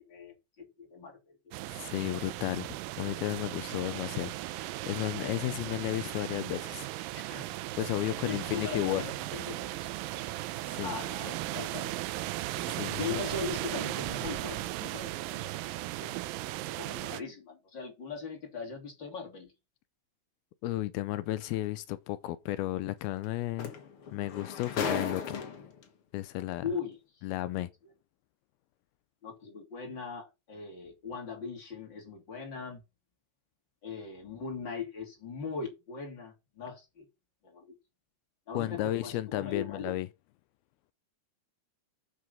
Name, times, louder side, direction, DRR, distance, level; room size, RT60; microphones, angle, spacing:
voice 1, 0.1-1.4 7.2-7.5 8.3-9.9 10.8-11.9 13.0-15.5 16.0-16.1 16.7-19.5 26.6-27.2 29.2-32.8 33.8-37.0 37.4-37.7 38.5-39.9, left 5 dB, 30° left, 3.2 m, -40 dB
sound 1, 1.5-17.2, right 16 dB, 80° right, 2.1 m, -37 dB
voice 2, 1.7-6.9 7.8-9.0 10.6-10.9 12.7-13.1 20.6-23.7 24.1-25.4 26.1-26.6 27.2-27.7 38.5-40.1, left 15 dB, 80° left, 2.4 m, -33 dB
sound 2, 21.4-21.5 23.2-23.3 23.6-25.8 26.8-26.9, left 5 dB, 55° left, 1.5 m, -36 dB
7.7 x 6.4 x 5.4 m
omnidirectional pair, 4.6 m